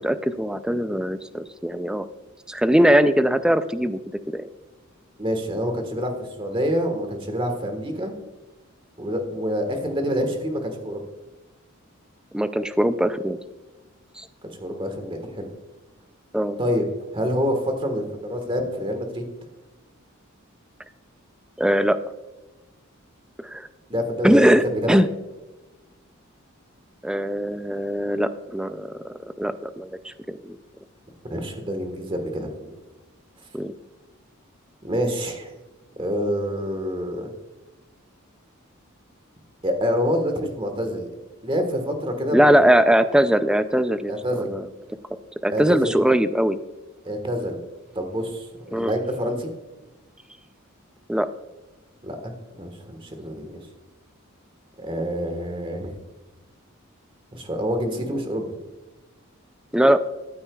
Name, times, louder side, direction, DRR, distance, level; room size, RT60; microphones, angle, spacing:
voice 1, 0.0-2.1 2.5-4.0 4.3-4.4 12.3-13.4 14.2-14.3 16.3-16.6 21.6-22.0 23.4-23.7 24.2-25.1 27.0-30.6 33.5-33.7 42.3-44.6 45.4-46.6 48.7-48.9 51.1-51.3 59.7-60.0, equal, 5° right, 11 dB, 0.4 m, -21 dB
voice 2, 5.2-8.1 9.0-11.0 14.4-15.5 16.6-16.8 17.1-19.2 23.9-25.0 31.3-32.7 34.8-35.5 36.0-37.3 39.6-41.1 41.4-42.5 44.1-44.5 45.5-46.0 47.0-47.6 47.9-49.5 52.0-53.6 54.8-56.0 57.3-58.5, equal, 25° right, 5 dB, 1.4 m, -27 dB
14.0 x 8.5 x 2.3 m, 1.1 s
head